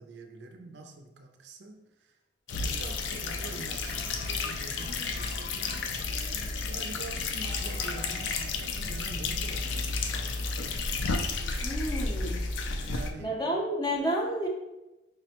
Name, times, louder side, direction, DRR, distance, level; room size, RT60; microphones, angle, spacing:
voice 1, 0.0-2.2 2.5-6.2 6.6-10.4 11.5-12.2 12.6-13.4, right 3 dB, 70° right, 5 dB, 0.4 m, -46 dB
sound 1, 2.5-13.1, left 3 dB, 85° left, 0.4 m, -32 dB
Toilet flush, 2.7-9.6, left 2 dB, 60° left, 0.7 m, -48 dB
voice 2, 11.6-12.4 13.2-14.5, equal, 20° left, -1 dB, 0.5 m, -30 dB
5.0 x 2.1 x 2.8 m, 0.98 s
head